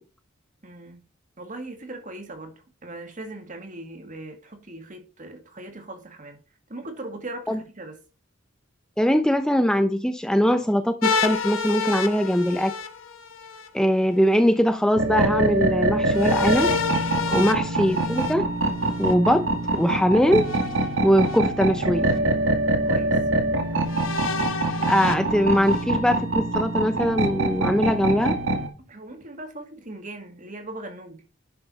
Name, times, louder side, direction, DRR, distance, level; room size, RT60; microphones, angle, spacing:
voice 1, 0.6-1.0 1.4-6.4 6.7-8.0 17.3-17.5 22.9-23.2 28.8-31.2, right 2 dB, 40° right, 1.9 m, -39 dB
voice 2, 9.0-12.7 13.7-16.7 17.3-18.5 19.0-19.5 19.7-20.4 21.0-22.1 24.9-28.3, equal, 5° left, 0.6 m, -21 dB
sound 1, 11.0-13.7 16.1-19.1 20.4-21.4 22.1-22.2 23.9-25.8, left 5 dB, 75° left, 1.1 m, -30 dB
sound 2, 15.0-28.7, right 2 dB, 75° right, 2.0 m, -24 dB
11.0 x 5.8 x 4.1 m
head